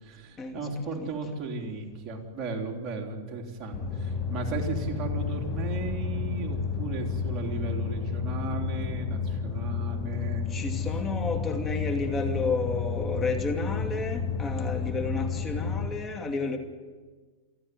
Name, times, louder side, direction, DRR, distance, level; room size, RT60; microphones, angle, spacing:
voice 1, 0.0-10.5, right 3 dB, 30° right, 0 dB, 3.7 m, -35 dB
sound 1, 3.7-15.9, left 5 dB, 35° left, 2.7 m, -31 dB
voice 2, 10.5-16.6, left 3 dB, 20° left, 5 dB, 2.5 m, -31 dB
28.5 x 9.7 x 9.7 m, 1.4 s
supercardioid pair, 140°, 0 cm